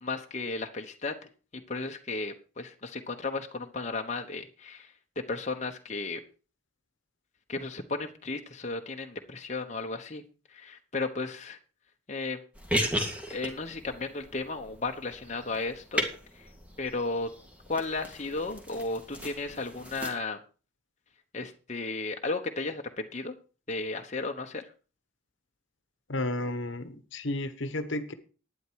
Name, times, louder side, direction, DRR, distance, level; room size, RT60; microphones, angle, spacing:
voice 1, 0.0-1.1 1.7-4.9 5.3-6.2 7.5-10.2 10.5-11.6 12.1-12.4 13.3-16.0 16.3-16.4 16.8-17.3 17.7-20.4 21.3-23.3 23.7-24.6, left 3 dB, 35° left, 4 dB, 1.0 m, -34 dB
sound 1, 12.5-20.1, equal, 5° right, 2.0 m, -36 dB
voice 2, 26.1-28.1, left 1 dB, 60° left, 11 dB, 1.1 m, -32 dB
11.5 x 9.5 x 4.7 m, 0.36 s
head